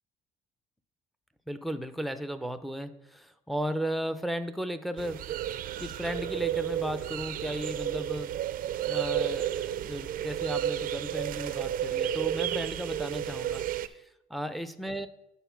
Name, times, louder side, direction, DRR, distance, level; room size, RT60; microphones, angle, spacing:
voice 1, 1.5-8.3 8.8-15.1, equal, ahead, 10 dB, 0.5 m, -35 dB
sound 1, 5.0-13.9, right 11 dB, 55° right, 0.4 m, -32 dB
9.1 x 4.3 x 5.8 m, 0.87 s
cardioid pair, 110°, 17 cm